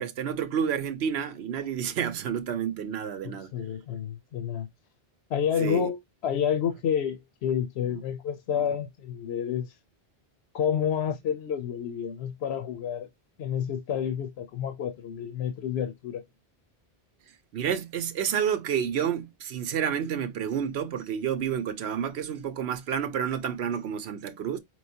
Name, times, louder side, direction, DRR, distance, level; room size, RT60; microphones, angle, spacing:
voice 1, 0.0-3.5 5.6-5.9 8.6-8.7 17.5-24.6, right 8 dB, 80° right, 0.9 m, -30 dB
voice 2, 3.2-4.7 5.3-9.7 10.5-13.1 13.4-16.2, left 8 dB, 85° left, 0.9 m, -29 dB
4.9 x 3.0 x 2.7 m
omnidirectional pair, 1.1 m